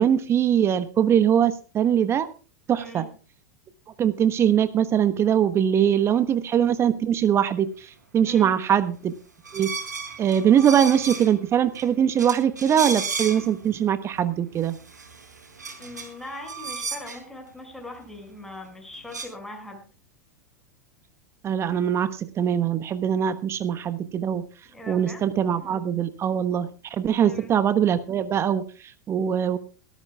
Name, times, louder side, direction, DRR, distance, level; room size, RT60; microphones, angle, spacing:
voice 1, 0.0-2.3 2.7-3.0 4.0-9.1 9.5-9.7 10.2-14.8 21.4-24.4 24.9-29.6, right 9 dB, 30° right, 11 dB, 1.2 m, -22 dB
voice 2, 2.8-3.1 8.3-8.5 15.8-19.8 24.7-25.2 27.2-27.5, left 2 dB, 5° left, 1 dB, 5.8 m, -40 dB
sound 1, 9.4-11.4 11.7-11.9 12.2-13.7 14.2-14.3 14.6-17.2 18.6-18.7 18.9-19.3, right 4 dB, 80° right, 4.3 m, -34 dB
22.5 x 13.5 x 2.3 m, 0.35 s
figure-of-eight pair, 90°, 9 cm